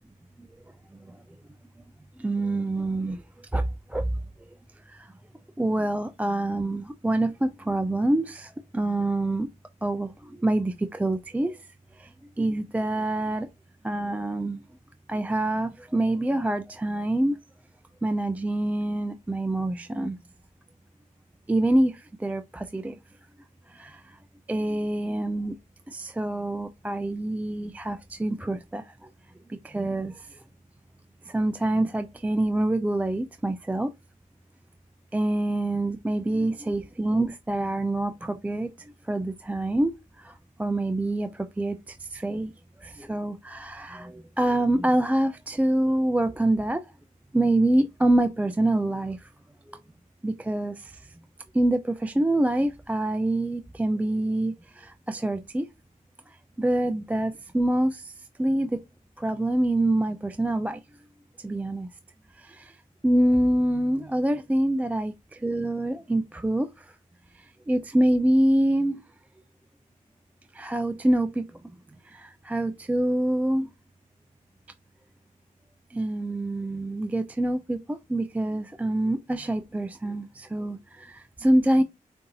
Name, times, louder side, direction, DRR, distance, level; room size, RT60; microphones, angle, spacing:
voice 1, 2.2-3.2 3.5-4.1 4.9-5.1 5.6-9.5 9.8-11.6 12.0-12.1 12.4-13.5 13.8-14.6 15.1-17.4 18.0-20.2 21.5-23.0 23.7-24.2 24.5-25.5 25.9-28.9 29.6-30.4 31.3-33.9 35.1-38.7 39.1-42.5 42.8-46.8 47.3-49.3 49.7-49.8 50.2-51.1 51.5-55.7 56.6-58.8 59.2-60.8 61.4-61.9 62.4-62.8 63.0-66.9 67.7-69.0 70.5-71.5 72.1-73.7 75.9-81.8, right 1 dB, 10° right, 0.3 m, -26 dB
6.7 x 2.6 x 2.7 m
cardioid pair, 80°, 14 cm